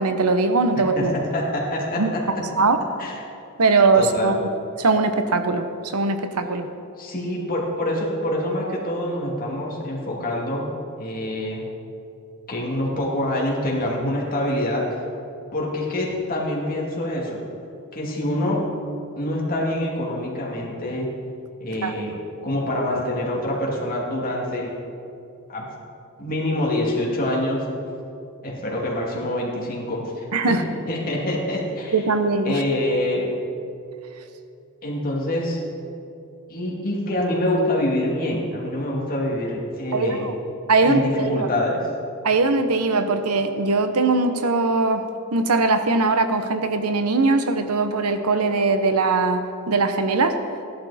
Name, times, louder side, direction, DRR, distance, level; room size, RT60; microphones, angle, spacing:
voice 1, 0.0-1.1 2.0-2.1 2.6-2.8 3.6-4.5 4.8-6.7 21.8-21.9 30.3-30.6 31.9-32.5 39.9-40.3 40.7-41.5 42.2-45.1 45.3-50.4, right 3 dB, 80° right, 8 dB, 0.9 m, -20 dB
voice 2, 0.7-2.5 3.0-3.1 3.9-4.4 7.0-10.7 11.0-11.7 12.5-15.0 15.5-17.4 17.9-18.7 19.2-21.1 21.6-22.2 22.4-24.7 25.5-25.7 26.2-27.7 28.4-30.6 30.9-32.0 32.4-33.3 34.8-35.6 36.5-40.3 40.8-41.9, left 1 dB, 40° left, -3 dB, 2.6 m, -25 dB
15.0 x 11.5 x 4.2 m, 2.6 s
head